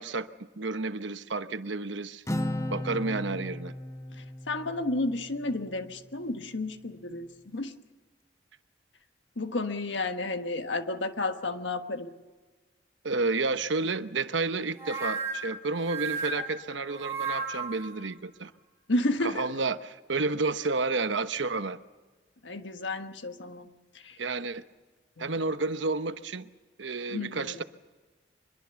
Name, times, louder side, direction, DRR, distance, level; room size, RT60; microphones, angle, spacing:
voice 1, 0.0-2.2 2.7-3.7 13.0-18.5 19.2-21.8 24.2-24.6 25.2-26.5 26.8-27.6, right 3 dB, 85° right, 11 dB, 1.0 m, -31 dB
Acoustic guitar, 2.3-5.9, left 1 dB, 15° left, 0.8 m, -36 dB
voice 2, 4.2-7.7 9.4-12.1 18.9-19.5 22.4-23.7 24.0-24.2 25.2-25.3 27.1-27.6, left 2 dB, 80° left, 7 dB, 1.4 m, -32 dB
sound 1, 14.8-17.9, right 4 dB, 15° right, 5.1 m, -34 dB
24.5 x 22.0 x 7.0 m, 1.3 s
head